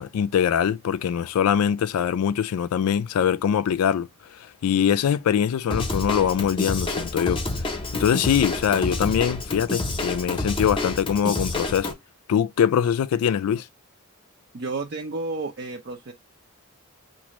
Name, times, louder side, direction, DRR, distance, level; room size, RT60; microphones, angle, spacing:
voice 1, 0.0-11.9 12.3-13.7, left 8 dB, 85° left, 0.3 m, -23 dB
Drum kit / Drum, 5.7-11.9, left 2 dB, 25° left, 0.7 m, -28 dB
voice 2, 14.5-16.1, right 3 dB, 50° right, 0.5 m, -31 dB
5.9 x 2.5 x 3.0 m
head